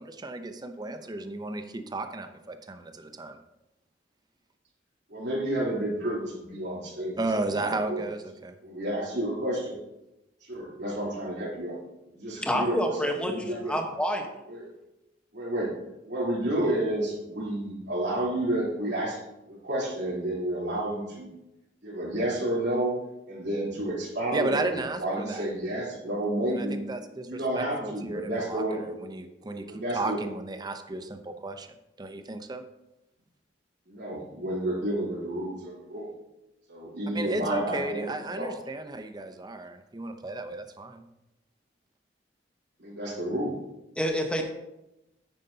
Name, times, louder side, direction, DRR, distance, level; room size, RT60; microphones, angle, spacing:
voice 1, 0.0-3.4 7.2-8.5 24.3-25.5 26.5-31.7 32.0-32.6 37.1-41.0, right 2 dB, 20° right, 7 dB, 0.7 m, -34 dB
voice 2, 5.1-7.1 7.4-8.0 8.6-9.8 10.5-11.8 12.1-13.8 14.5-14.7 15.3-15.7 16.1-19.2 19.5-21.3 21.8-23.0 23.3-26.8 27.3-28.9 29.7-30.2 33.9-36.1 36.7-38.5 42.8-43.6, right 1 dB, 65° right, -5 dB, 3.4 m, -30 dB
voice 3, 12.4-14.3 44.0-44.4, equal, 5° left, 3 dB, 1.1 m, -28 dB
9.4 x 9.3 x 2.8 m, 0.92 s
head